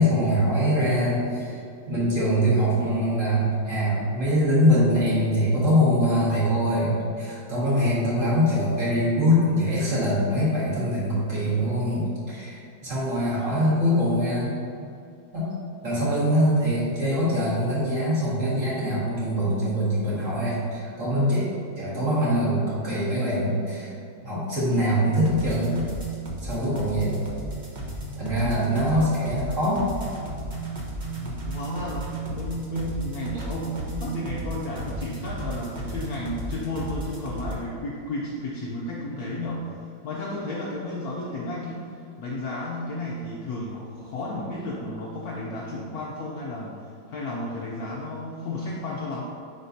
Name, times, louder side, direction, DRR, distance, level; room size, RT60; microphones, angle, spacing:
voice 1, 0.0-1.6 1.9-14.6 15.3-15.5 15.8-21.5 21.8-23.9 24.2-25.8 26.4-27.3 28.2-29.8, equal, 40° right, -8 dB, 1.9 m, -23 dB
voice 2, 11.4-11.7 28.4-28.6 28.9-29.1 31.1-49.2, left 2 dB, 65° left, -4 dB, 0.9 m, -33 dB
sound 1, 25.1-37.5, right 2 dB, 65° right, 0.4 m, -34 dB
9.5 x 4.0 x 2.7 m, 2.5 s
omnidirectional pair, 2.2 m